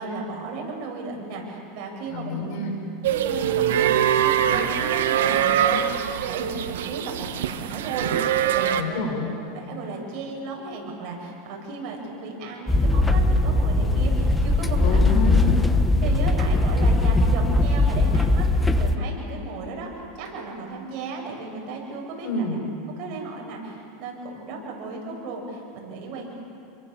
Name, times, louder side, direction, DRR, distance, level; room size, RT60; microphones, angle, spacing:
voice 1, 0.0-2.6 3.1-5.9 6.3-9.1 9.5-15.2 16.0-19.9 20.2-22.3 23.0-26.3, right 3 dB, 50° right, 0 dB, 6.8 m, -35 dB
voice 2, 2.1-2.7 8.8-9.3 14.8-15.6 22.2-22.7, left 2 dB, 60° left, 2 dB, 6.6 m, -28 dB
sound 1, 3.0-8.8, right 10 dB, 90° right, 1.4 m, -23 dB
sound 2, 12.7-19.0, left 2 dB, 10° left, 1.2 m, -20 dB
29.0 x 23.0 x 7.2 m, 2.6 s
supercardioid pair, 140°, 0 cm